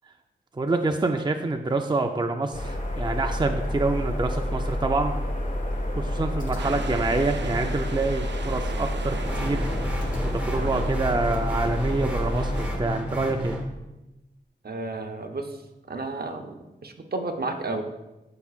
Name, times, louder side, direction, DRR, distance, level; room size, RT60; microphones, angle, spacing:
voice 1, 0.5-5.1 6.0-9.6 10.3-13.6, right 3 dB, 25° right, 5 dB, 0.5 m, -27 dB
sound 1, 2.5-12.8, left 1 dB, 45° left, 1.6 m, -29 dB
sound 2, 6.6-12.7, right 5 dB, 75° right, 0.6 m, -40 dB
sound 3, 9.2-13.6, equal, 5° right, 1.5 m, -32 dB
voice 2, 14.6-15.6 15.9-17.8, right 2 dB, 55° right, 4 dB, 0.9 m, -32 dB
14.0 x 5.7 x 2.5 m, 1.0 s
wide cardioid pair, 70°, 19 cm